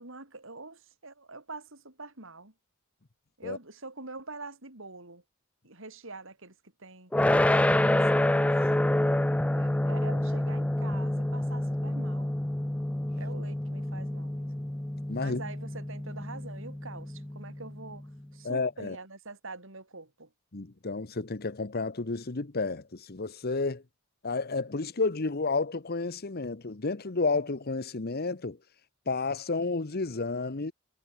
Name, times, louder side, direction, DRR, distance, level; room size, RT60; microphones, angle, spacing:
voice 1, 0.0-2.5 3.4-5.2 5.6-6.5 6.8-7.1 7.5-8.7 9.5-12.3 13.2-14.5 15.2-18.1 18.3-20.3, right 3 dB, 65° right, 5.7 m, -45 dB
sound 1, 7.1-18.1, left 1 dB, 5° left, 0.3 m, -28 dB
voice 2, 15.1-15.4 18.4-19.0 20.5-23.8 24.2-28.6 29.1-30.7, left 3 dB, 50° left, 1.1 m, -31 dB
head